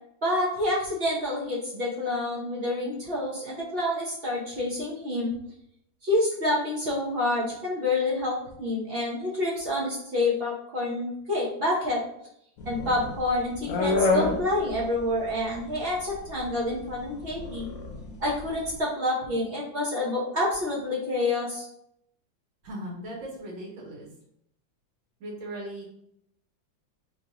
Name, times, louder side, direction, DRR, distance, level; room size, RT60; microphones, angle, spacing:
voice 1, 0.2-5.3 6.0-12.0 12.7-17.7 18.2-21.7, left 1 dB, 50° right, -5 dB, 0.7 m, -28 dB
sound 1, 12.6-18.7, left 3 dB, 65° left, 0.8 m, -29 dB
voice 2, 22.6-24.1 25.2-25.8, right 1 dB, 75° right, -3 dB, 1.9 m, -38 dB
3.8 x 3.3 x 2.9 m, 0.74 s
omnidirectional pair, 2.1 m